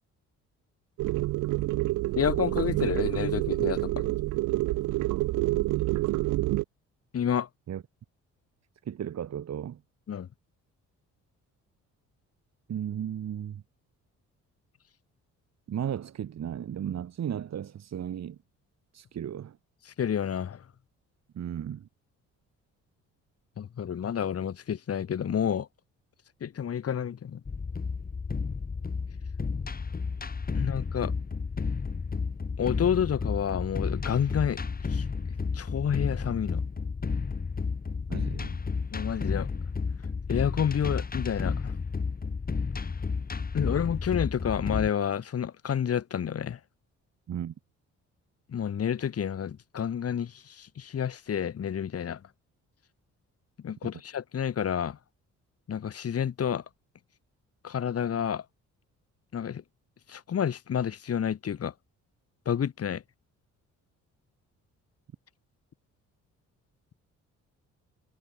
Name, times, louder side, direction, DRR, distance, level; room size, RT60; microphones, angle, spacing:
sound 1, 1.0-6.6, right 18 dB, 80° right, 0.5 m, -27 dB
voice 1, 2.1-4.1 7.1-7.5 10.1-10.3 20.0-20.6 23.6-25.7 26.4-27.4 30.5-31.1 32.6-34.6 34.9-35.0 35.5-36.6 38.9-39.5 40.3-41.7 43.5-46.6 48.5-52.2 53.6-55.0 55.7-56.6 57.6-58.4 59.3-59.6 60.1-61.7 62.4-63.0, left 8 dB, 50° left, 2.9 m, -29 dB
voice 2, 8.8-9.8 12.7-13.6 15.7-18.4 18.9-19.6 21.3-21.9 38.1-38.6 47.3-47.5, right 9 dB, 60° right, 4.3 m, -35 dB
sound 2, 27.4-44.9, left 5 dB, 30° left, 2.5 m, -32 dB
cardioid pair, 90°, 30 cm